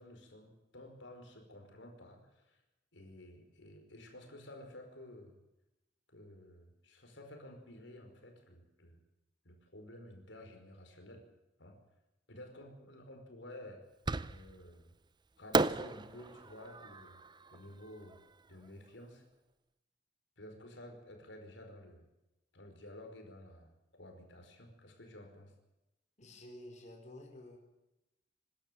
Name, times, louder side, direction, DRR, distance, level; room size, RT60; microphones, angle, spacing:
voice 1, 0.0-2.6 2.9-5.4 6.1-9.0 9.4-11.2 11.6-11.8 12.3-13.8 14.3-14.9 15.4-17.2 17.5-18.2 18.5-19.2 20.4-22.0 22.5-25.5, left 1 dB, 80° left, 3 dB, 5.1 m, -52 dB
Fireworks, 14.1-14.7 15.5-18.7, right 3 dB, 25° right, 0.7 m, -35 dB
voice 2, 26.2-27.6, left 1 dB, 40° left, 2 dB, 4.6 m, -51 dB
25.5 x 13.0 x 9.2 m, 0.94 s
head